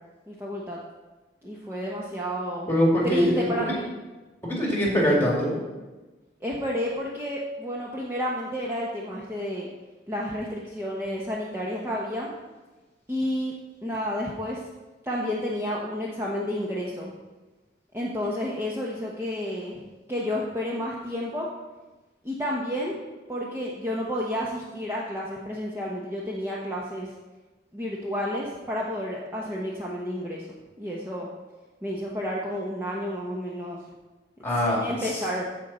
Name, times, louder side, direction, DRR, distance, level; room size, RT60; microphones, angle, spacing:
voice 1, 0.3-0.8 1.4-2.7 3.0-3.9 6.4-9.7 10.1-12.3 13.1-13.5 13.8-14.6 15.0-17.1 17.9-19.8 20.1-21.5 22.2-22.9 23.3-27.1 27.7-30.5 30.8-31.3 31.8-33.8 34.6-35.5, equal, 15° right, -4 dB, 0.9 m, -31 dB
voice 2, 2.7-3.5 4.4-5.5 34.4-35.2, equal, 10° left, -3 dB, 2.4 m, -23 dB
14.5 x 5.2 x 4.2 m, 1.2 s
head